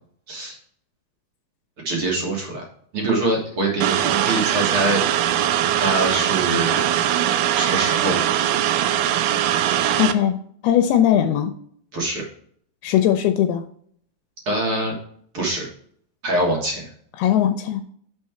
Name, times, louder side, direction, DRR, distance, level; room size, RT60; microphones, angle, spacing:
voice 1, 1.8-2.6 2.9-5.0 5.7-7.2 7.5-8.3 11.9-12.2 14.4-14.9 15.3-15.6 16.2-16.9, right 2 dB, 55° right, -1 dB, 1.6 m, -24 dB
sound 1, 3.8-10.1, right 11 dB, 80° right, 2.4 m, -21 dB
voice 2, 10.0-10.4 10.6-11.5 12.8-13.6 17.2-17.8, left 10 dB, 85° left, 8 dB, 2.5 m, -19 dB
7.4 x 4.7 x 4.3 m, 0.63 s
omnidirectional pair, 4.6 m